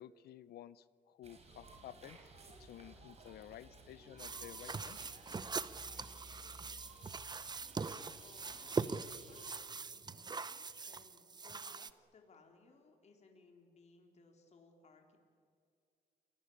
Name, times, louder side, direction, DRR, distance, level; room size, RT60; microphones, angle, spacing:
voice 1, 0.0-2.2 2.4-5.0, left 12 dB, 80° left, 18 dB, 0.8 m, -53 dB
sound 1, 1.2-9.6, right 2 dB, 40° right, 5.0 m, -57 dB
sound 2, 4.2-11.9, right 4 dB, 25° right, 0.8 m, -42 dB
voice 2, 7.9-15.2, left 4 dB, 45° left, 3 dB, 3.8 m, -64 dB
28.5 x 19.0 x 8.6 m, 2.3 s
cardioid pair, 100°, 16 cm